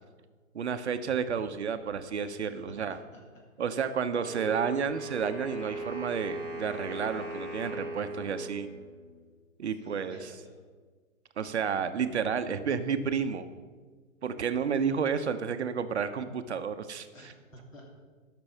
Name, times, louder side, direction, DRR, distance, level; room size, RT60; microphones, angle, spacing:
voice 1, 0.5-3.0 3.6-8.7 9.6-10.2 11.4-13.5 14.2-17.3, right 6 dB, 55° right, 10 dB, 0.7 m, -31 dB
voice 2, 2.5-3.2 3.7-3.9 9.7-10.6 17.1-17.9, equal, 70° left, 0 dB, 3.2 m, -52 dB
Wind instrument woodwind instrument, 4.2-9.2, right 2 dB, 15° left, 1.0 m, -39 dB
12.5 x 6.1 x 5.5 m, 1.4 s
hypercardioid pair, 165°, 41 cm